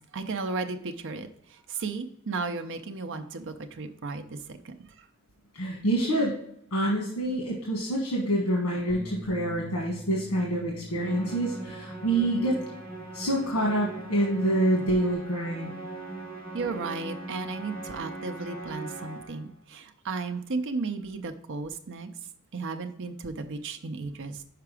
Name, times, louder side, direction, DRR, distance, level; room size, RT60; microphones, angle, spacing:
voice 1, 0.1-5.0 16.5-22.1 22.5-24.4, right 4 dB, 60° right, 7 dB, 0.6 m, -34 dB
voice 2, 5.5-6.4 6.7-12.6 13.1-15.7, right 1 dB, 90° left, -2 dB, 1.3 m, -27 dB
Bass guitar, 8.9-15.1, equal, 30° right, 1.6 m, -46 dB
Musical instrument, 11.0-19.5, right 3 dB, 25° left, 1.8 m, -40 dB
5.9 x 4.7 x 4.8 m, 0.71 s
head